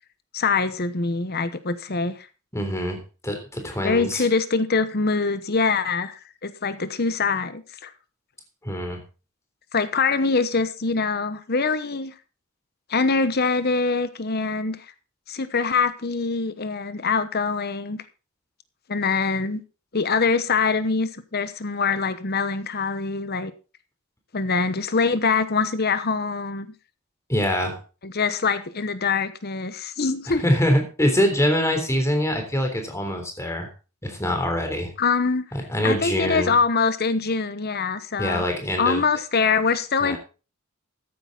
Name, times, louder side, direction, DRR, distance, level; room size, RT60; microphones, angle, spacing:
voice 1, 0.3-2.3 3.8-7.9 9.7-12.1 12.9-14.9 15.3-18.0 18.9-19.6 19.9-23.5 24.3-26.7 28.0-30.4 35.0-35.5 35.8-38.4 38.8-40.2, left 4 dB, 45° left, 13 dB, 1.0 m, -24 dB
voice 2, 2.5-4.3 8.6-9.0 27.3-27.8 30.3-33.7 34.0-34.9 35.5-36.6 38.2-39.1 40.0-40.2, equal, 15° left, 4 dB, 3.5 m, -24 dB
14.5 x 10.0 x 3.9 m, 0.33 s
head